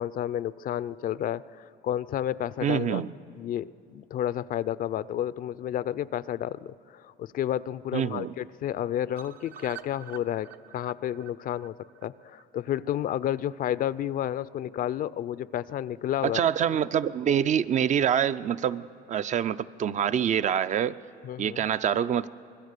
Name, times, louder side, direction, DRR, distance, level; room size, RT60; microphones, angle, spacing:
voice 1, 0.0-3.0 3.4-10.5 10.7-11.7 12.0-16.4 21.2-21.6, left 11 dB, 55° left, 17 dB, 0.5 m, -31 dB
voice 2, 2.6-3.1 7.9-8.3 16.2-21.0 21.4-22.3, right 9 dB, 45° right, 14 dB, 0.6 m, -26 dB
sound 1, 9.2-13.2 13.5-13.6 13.9-14.0 14.3-14.4, right 10 dB, 65° right, 1.1 m, -48 dB
26.0 x 21.0 x 6.7 m, 2.5 s
cardioid pair, 110°, 17 cm